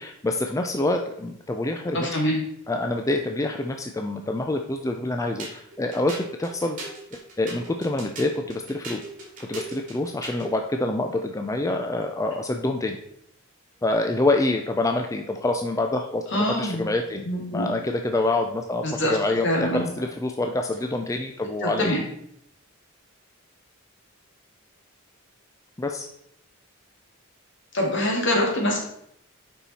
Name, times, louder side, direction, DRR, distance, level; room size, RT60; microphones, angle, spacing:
voice 1, 0.0-2.1 2.7-6.8 7.1-9.0 9.4-13.0 13.8-17.3 17.5-22.0 25.8-26.1, left 2 dB, 15° left, 4 dB, 0.4 m, -26 dB
voice 2, 1.9-2.4 16.3-16.9 17.2-17.7 18.8-19.2 19.4-19.9 21.6-22.0 27.7-28.8, left 1 dB, 60° left, 0 dB, 2.2 m, -24 dB
sound 1, 5.4-10.5, right 2 dB, 40° right, 2.7 m, -39 dB
7.1 x 5.5 x 4.2 m, 0.73 s
head